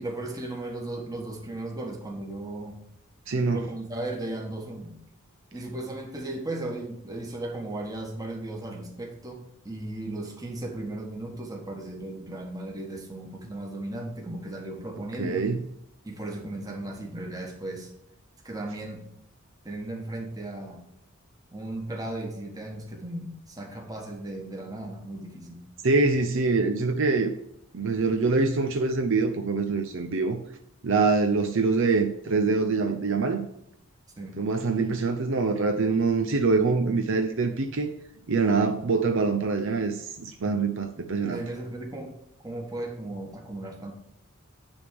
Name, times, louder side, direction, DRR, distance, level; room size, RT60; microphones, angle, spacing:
voice 1, 0.0-2.8 3.4-5.0 5.5-15.5 16.0-17.9 18.4-19.1 19.6-20.8 21.5-25.6 34.2-34.4 41.2-42.2 42.4-43.9, right 1 dB, 15° right, 1 dB, 1.4 m, -36 dB
voice 2, 3.3-3.6 15.2-15.6 25.8-27.3 27.7-30.4 30.8-33.5 34.4-37.9 38.3-41.4, right 4 dB, 65° right, 6 dB, 0.6 m, -24 dB
10.0 x 3.6 x 6.7 m, 0.76 s
head